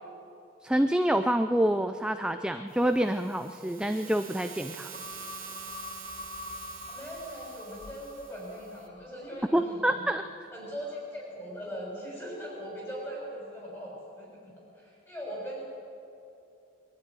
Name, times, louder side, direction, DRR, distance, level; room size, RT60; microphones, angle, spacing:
voice 1, 0.6-4.9 9.5-10.2, right 1 dB, 5° right, 8 dB, 0.4 m, -27 dB
sound 1, 2.7-8.9, right 9 dB, 75° right, 2.2 m, -46 dB
sound 2, 4.9-9.6 10.0-10.1, left 4 dB, 35° left, 1.8 m, -45 dB
voice 2, 6.9-10.1 10.5-15.6, equal, 10° left, -3 dB, 6.5 m, -40 dB
22.0 x 12.5 x 9.8 m, 2.6 s
head